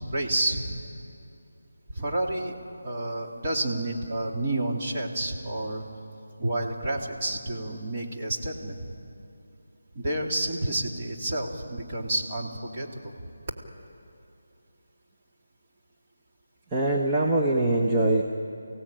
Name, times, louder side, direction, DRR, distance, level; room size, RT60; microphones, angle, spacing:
voice 1, 0.0-0.8 1.9-2.5 2.8-5.8 6.4-8.9 9.9-13.3, right 1 dB, 30° right, -1 dB, 2.8 m, -30 dB
voice 2, 16.7-18.2, right 1 dB, 15° right, -2 dB, 1.1 m, -23 dB
29.0 x 17.0 x 9.0 m, 2.7 s
figure-of-eight pair, 165°, 0 cm